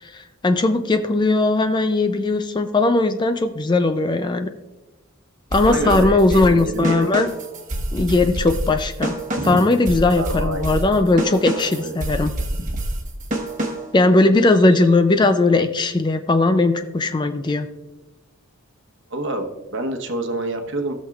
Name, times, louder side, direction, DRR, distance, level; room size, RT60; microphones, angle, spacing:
voice 1, 0.1-4.5 5.5-7.3 7.9-9.2 9.5-12.3 13.9-17.7, left 2 dB, 20° left, 9 dB, 0.4 m, -18 dB
sound 1, 5.5-14.0, right 1 dB, 35° right, 1.2 m, -27 dB
voice 2, 5.6-7.1 9.3-9.6 10.1-10.8 11.5-12.1 12.6-12.7 14.6-14.8 19.1-20.9, right 1 dB, 60° right, 5 dB, 1.1 m, -27 dB
16.5 x 6.4 x 2.4 m, 1.1 s
head